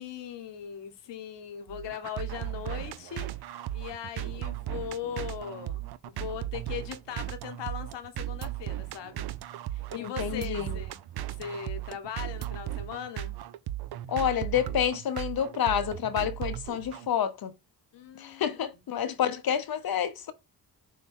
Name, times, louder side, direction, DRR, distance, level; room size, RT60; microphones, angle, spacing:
voice 1, 0.0-9.3 9.7-11.0 11.4-13.3 17.9-18.6 19.0-19.4, left 8 dB, 75° left, 1.1 m, -39 dB
sound 1, 1.7-17.1, right 13 dB, 65° right, 0.6 m, -36 dB
voice 2, 9.9-10.8 14.1-17.5 18.2-20.3, left 9 dB, 55° left, 0.7 m, -29 dB
6.3 x 2.2 x 3.6 m
hypercardioid pair, 40°, 43 cm